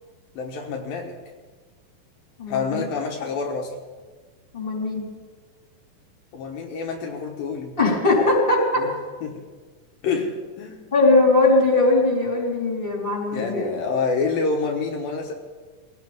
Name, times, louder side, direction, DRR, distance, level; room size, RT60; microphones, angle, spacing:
voice 1, 0.3-1.1 2.5-3.8 6.3-7.8 8.8-8.9 9.2-9.5 10.0-10.8 13.3-15.3, left 4 dB, 75° left, 2 dB, 3.0 m, -27 dB
voice 2, 2.4-2.8 4.5-5.0 7.8-8.7 10.9-13.7, left 2 dB, 15° left, -2 dB, 3.9 m, -20 dB
23.5 x 17.0 x 3.6 m, 1.4 s
omnidirectional pair, 4.2 m